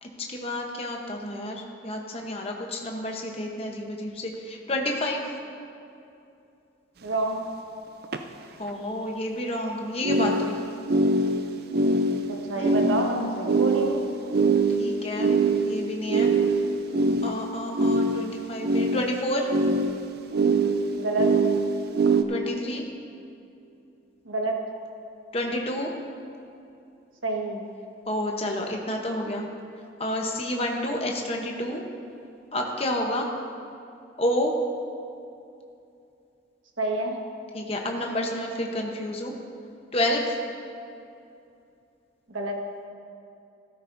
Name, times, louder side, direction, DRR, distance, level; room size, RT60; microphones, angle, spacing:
voice 1, 0.0-5.2 8.6-10.6 12.6-13.3 14.8-15.3 15.7-16.3 17.2-19.5 22.3-22.8 25.3-25.9 28.1-29.5 30.0-31.8 32.5-33.3 34.2-34.5 37.5-39.3 39.9-40.4, left 1 dB, 30° left, 1 dB, 0.9 m, -29 dB
voice 2, 7.0-7.4 12.3-14.1 21.0-21.3 24.2-24.6 27.2-27.6 36.8-37.1 42.3-42.6, right 2 dB, 85° right, 0 dB, 1.5 m, -28 dB
sound 1, 7.1-7.2 8.0-8.2 10.0-22.2, right 3 dB, 50° right, 0.5 m, -24 dB
14.0 x 13.0 x 2.6 m, 2.6 s
head